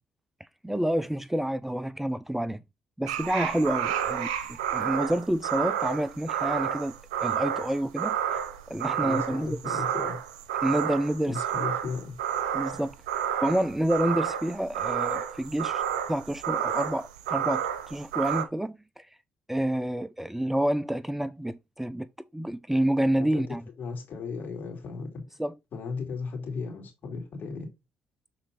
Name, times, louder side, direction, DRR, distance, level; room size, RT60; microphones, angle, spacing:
voice 1, 0.6-2.6 3.0-6.9 7.2-8.2 8.7-9.8 10.6-11.4 12.5-12.9 13.4-15.8 16.1-19.1 19.5-23.6 25.4-25.5, right 1 dB, 5° right, 0.4 m, -28 dB
sound 1, 3.1-18.4, right 9 dB, 90° right, 0.7 m, -30 dB
voice 2, 9.0-10.2 11.3-12.2 23.2-23.5 23.8-25.4 25.7-27.7, left 4 dB, 55° left, 3.1 m, -36 dB
6.8 x 4.3 x 4.0 m
hypercardioid pair, 55°, 4 cm